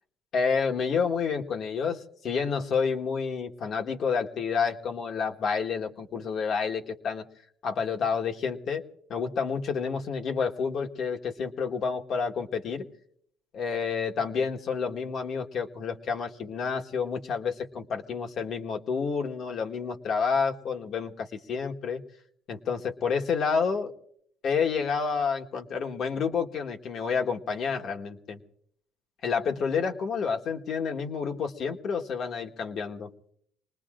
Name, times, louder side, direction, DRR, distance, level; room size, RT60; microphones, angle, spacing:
voice 1, 0.3-7.2 7.6-8.8 9.1-12.8 13.5-22.0 22.5-23.9 24.4-28.4 29.2-33.1, left 5 dB, 55° left, 3 dB, 1.3 m, -29 dB
27.0 x 20.0 x 2.5 m, 0.68 s
cardioid pair, 95°, 0 cm